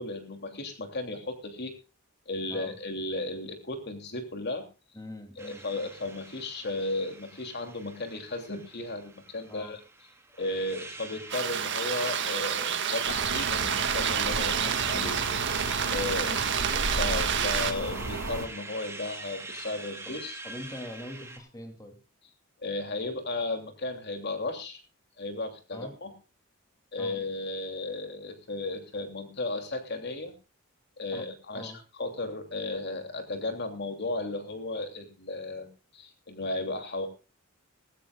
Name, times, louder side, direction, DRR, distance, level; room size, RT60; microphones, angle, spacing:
voice 1, 0.0-1.7 2.3-4.7 5.4-9.8 10.4-14.5 14.9-15.5 15.9-16.4 16.7-20.4 22.6-24.8 25.2-26.1 26.9-30.3 31.0-35.7 35.9-37.1, left 2 dB, 50° left, 6 dB, 3.0 m, -34 dB
voice 2, 4.9-5.6 9.5-9.8 14.6-14.8 16.2-16.5 20.0-22.0 25.7-25.9 27.0-27.2 31.1-31.3 31.5-31.8, left 1 dB, 15° left, 5 dB, 2.9 m, -43 dB
sound 1, 5.4-21.4, right 2 dB, 15° right, 2.7 m, -45 dB
sound 2, 11.3-17.7, right 8 dB, 60° right, 1.8 m, -29 dB
sound 3, 13.0-18.5, right 2 dB, 85° right, 3.0 m, -34 dB
19.5 x 16.5 x 2.4 m, 0.32 s
head